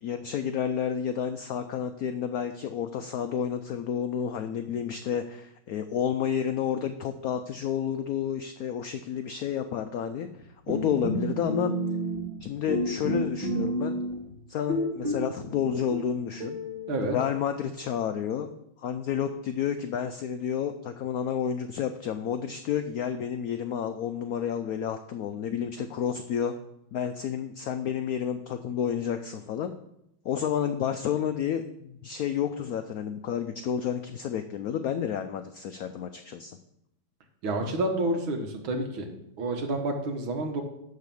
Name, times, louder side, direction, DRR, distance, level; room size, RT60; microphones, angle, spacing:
voice 1, 0.0-10.3 10.7-11.7 12.4-14.0 14.5-16.6 17.1-18.5 18.8-26.5 26.9-29.8 30.2-36.6, left 8 dB, 85° left, 8 dB, 0.8 m, -30 dB
sound 1, 10.7-12.4 12.7-14.3 14.7-17.3, equal, 70° right, 2.7 m, -31 dB
voice 2, 37.4-39.1 39.4-40.6, right 2 dB, 85° right, 4 dB, 2.1 m, -29 dB
11.5 x 4.1 x 6.9 m, 0.80 s
omnidirectional pair, 2.1 m